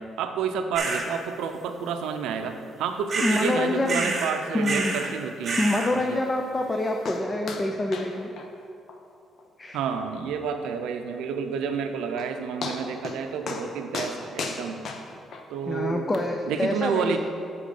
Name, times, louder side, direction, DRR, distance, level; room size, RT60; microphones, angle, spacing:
voice 1, 0.0-5.6 5.9-6.2 9.7-14.9 15.5-16.0 16.5-17.2, right 6 dB, 90° right, 7 dB, 0.5 m, -30 dB
sound 1, 0.8-1.1 3.1-3.5 3.9-4.3 4.6-5.1 5.4-5.9, right 3 dB, 40° right, 1.1 m, -28 dB
voice 2, 3.2-4.1 4.5-4.9 5.6-8.3 9.6-9.8 15.7-17.2, left 1 dB, 25° left, 3 dB, 0.5 m, -26 dB
sound 2, 7.0-7.2 7.5-7.7 7.9-8.1 8.4-8.5 8.9-9.0 9.4-9.5 9.9-10.0 11.7-11.8 12.2-12.3 12.6-13.2 13.5-13.7 13.9-15.4 16.1-16.2, left 4 dB, 60° left, 0.7 m, -34 dB
7.6 x 4.1 x 5.3 m, 2.5 s
cardioid pair, 90°, 0 cm